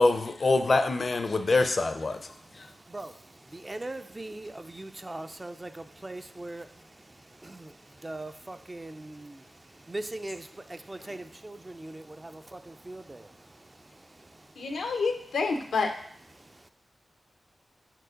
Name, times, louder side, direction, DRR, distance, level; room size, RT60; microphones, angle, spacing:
voice 1, 0.0-2.2, left 3 dB, 50° left, 0.5 m, -24 dB
voice 2, 3.5-6.7 7.4-7.7 8.0-9.4 9.9-13.3, right 2 dB, 25° right, 0.4 m, -40 dB
voice 3, 14.6-15.9, left 4 dB, 90° left, 0.8 m, -28 dB
4.6 x 4.3 x 5.0 m
wide cardioid pair, 80°, 0 cm